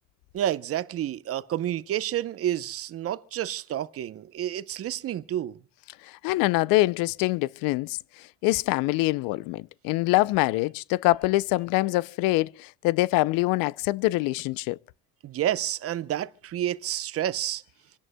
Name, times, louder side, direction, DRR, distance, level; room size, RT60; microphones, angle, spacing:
voice 1, 0.3-5.6 15.2-17.6, right 11 dB, 40° right, 0.7 m, -29 dB
voice 2, 6.2-8.0 8.4-14.8, left 19 dB, 70° left, 0.5 m, -24 dB
28.0 x 11.0 x 2.2 m
cardioid pair, 120°, 35 cm